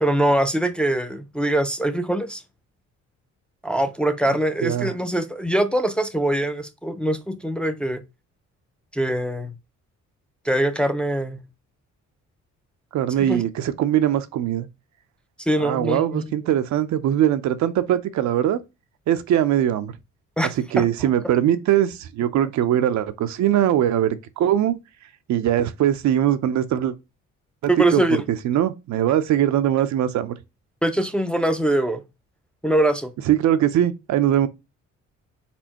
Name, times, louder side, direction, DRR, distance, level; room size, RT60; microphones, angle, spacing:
voice 1, 0.0-2.4 3.6-8.0 8.9-9.5 10.4-11.4 13.2-13.4 15.5-16.3 20.4-20.9 27.7-28.2 30.8-32.0 32.6-33.1, right 1 dB, 5° left, 0.5 m, -23 dB
voice 2, 12.9-14.7 15.6-18.6 19.1-19.9 20.7-24.8 25.3-26.9 27.6-30.3 33.3-34.5, right 11 dB, 70° right, 0.6 m, -21 dB
4.3 x 4.2 x 2.9 m
cardioid pair, 90°, 30 cm